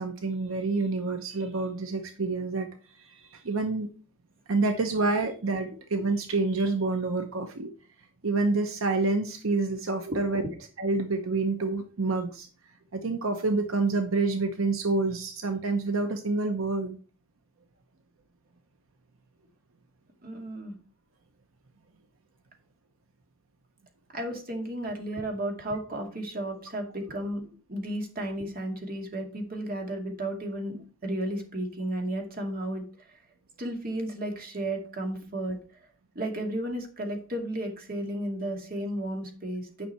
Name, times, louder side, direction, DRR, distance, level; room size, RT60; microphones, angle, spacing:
voice 1, 0.0-2.7 3.0-3.9 4.5-7.7 8.2-10.4 10.8-12.5 12.9-17.0, right 3 dB, 80° right, 7 dB, 0.8 m, -28 dB
voice 2, 10.1-10.5 20.2-20.8 24.1-32.8 33.6-35.6 36.2-39.9, right 1 dB, 45° right, 2 dB, 2.3 m, -33 dB
9.9 x 5.6 x 4.4 m, 0.39 s
head